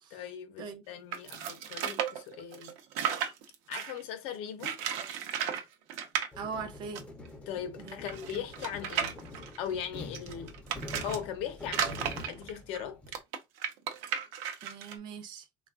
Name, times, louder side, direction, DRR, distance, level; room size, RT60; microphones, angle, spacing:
voice 1, 0.1-2.7 3.7-4.8 7.5-9.2 9.6-10.5 11.0-13.0, left 8 dB, 70° left, 0.6 m, -39 dB
sound 1, 1.1-4.0 4.6-5.6 5.9-6.3 7.0-7.1 7.3-7.4 7.9-11.2 11.7-15.0, right 8 dB, 90° right, 0.6 m, -34 dB
sound 2, 6.3-13.2, left 2 dB, 15° left, 0.5 m, -45 dB
voice 2, 6.4-7.0 7.8-8.0 8.3-8.4 14.6-15.5, right 5 dB, 45° right, 0.5 m, -41 dB
3.4 x 2.3 x 2.3 m
cardioid pair, 165°, 10 cm